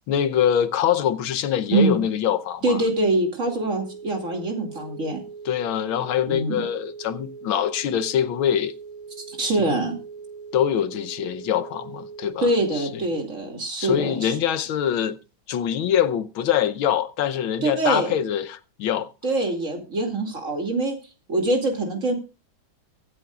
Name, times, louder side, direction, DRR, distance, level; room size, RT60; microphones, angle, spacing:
voice 1, 0.1-2.8 5.4-8.7 9.6-9.8 10.5-13.0 13.8-15.2 15.5-19.1, left 9 dB, 85° left, 1.7 m, -24 dB
voice 2, 2.6-5.2 6.3-6.6 9.3-9.9 12.4-14.3 17.6-18.2 19.2-21.0 21.3-22.1, right 2 dB, 40° right, 2.8 m, -24 dB
sound 1, 3.5-12.7, right 5 dB, 80° right, 3.2 m, -41 dB
23.5 x 8.2 x 2.4 m
omnidirectional pair, 2.2 m